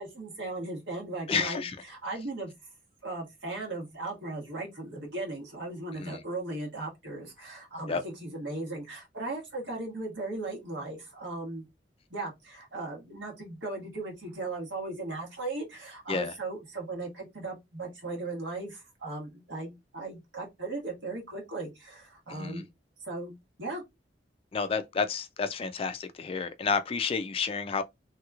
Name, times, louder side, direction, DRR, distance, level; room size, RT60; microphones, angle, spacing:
voice 1, 0.0-2.5 3.0-11.7 12.1-22.6 23.0-23.3 23.6-23.8, right 2 dB, 80° right, 1.5 m, -37 dB
voice 2, 1.3-1.8 6.0-6.2 7.9-8.0 16.1-16.3 22.3-22.6 24.5-27.8, left 5 dB, 30° left, 0.3 m, -30 dB
3.1 x 2.9 x 2.4 m
head